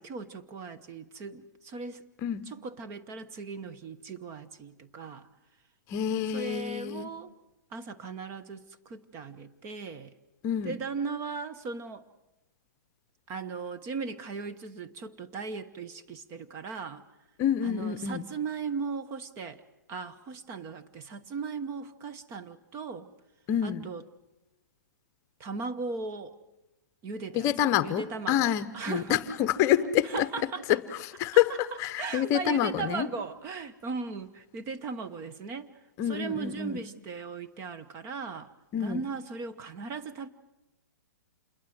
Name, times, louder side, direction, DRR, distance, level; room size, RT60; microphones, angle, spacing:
voice 1, 0.0-2.0 2.5-5.3 6.3-7.3 7.7-10.1 10.6-12.0 13.3-17.0 17.6-19.6 19.9-23.1 23.6-24.0 25.4-26.4 27.0-27.5 27.8-29.2 29.8-30.8 31.5-31.6 32.0-35.7 36.1-38.5 38.8-40.3, right 4 dB, 30° right, 1.1 m, -37 dB
voice 2, 5.9-7.1 10.4-10.8 17.4-18.2 23.5-23.9 27.3-30.3 30.7-30.8 31.2-31.5 31.8-33.1 36.0-36.8 38.7-39.0, left 10 dB, 30° left, 0.9 m, -27 dB
27.0 x 21.5 x 7.8 m
hypercardioid pair, 140°, 10 cm